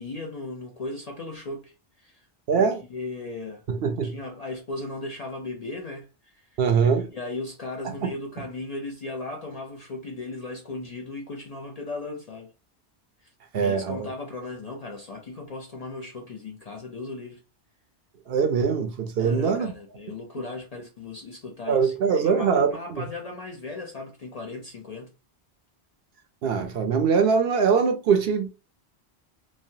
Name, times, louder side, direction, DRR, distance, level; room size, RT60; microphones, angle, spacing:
voice 1, 0.0-2.3 2.5-3.6 4.0-6.6 7.1-12.5 13.2-13.3 13.6-17.4 19.2-25.1, left 2 dB, 50° left, 0.5 m, -37 dB
voice 2, 2.5-2.8 3.7-4.1 6.6-7.1 7.8-8.1 13.5-14.1 18.3-19.7 20.4-20.5 21.7-23.0 26.4-28.5, right 6 dB, 65° right, 0.7 m, -23 dB
3.1 x 2.2 x 2.6 m
omnidirectional pair, 1.1 m